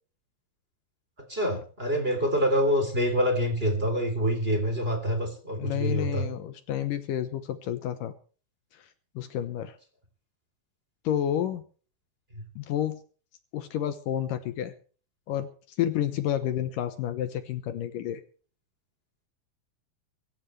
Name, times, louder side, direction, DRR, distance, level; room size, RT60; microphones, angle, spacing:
voice 1, 1.2-6.3 12.3-12.4, equal, 15° right, 4 dB, 3.3 m, -26 dB
voice 2, 5.6-8.1 9.2-9.7 11.0-11.6 12.6-13.0 13.5-14.7 15.3-15.5 15.8-18.2, left 11 dB, 70° left, 10 dB, 2.5 m, -30 dB
24.5 x 14.0 x 3.3 m, 0.39 s
omnidirectional pair, 4.1 m